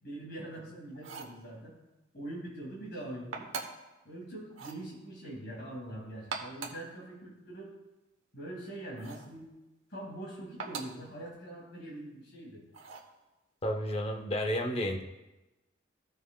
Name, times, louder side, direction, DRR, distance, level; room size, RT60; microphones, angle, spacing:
voice 1, 0.0-1.8 2.1-3.5 4.0-7.7 8.3-9.5 9.9-12.6, right 1 dB, 55° left, -4 dB, 2.1 m, -43 dB
sound 1, 0.9-1.4 3.3-3.9 4.5-4.8 6.1-6.9 9.0-9.3 10.6-11.0 12.7-13.1, right 5 dB, 85° right, 0.9 m, -41 dB
voice 2, 13.6-15.0, equal, 30° left, 4 dB, 0.7 m, -31 dB
15.0 x 5.1 x 2.2 m, 1.0 s
head